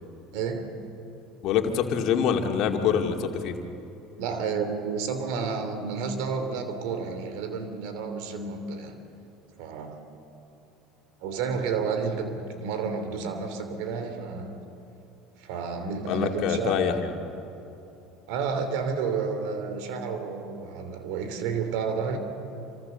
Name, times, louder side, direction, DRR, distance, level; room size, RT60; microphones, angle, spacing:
voice 1, 0.3-0.8 4.2-9.0 9.6-10.0 11.2-14.6 15.4-16.9 18.3-22.2, right 5 dB, 70° right, 8 dB, 3.0 m, -31 dB
voice 2, 1.4-3.5 16.1-17.1, left 7 dB, 60° left, 4 dB, 2.3 m, -25 dB
26.5 x 25.0 x 6.9 m, 2.9 s
hypercardioid pair, 75°, 0 cm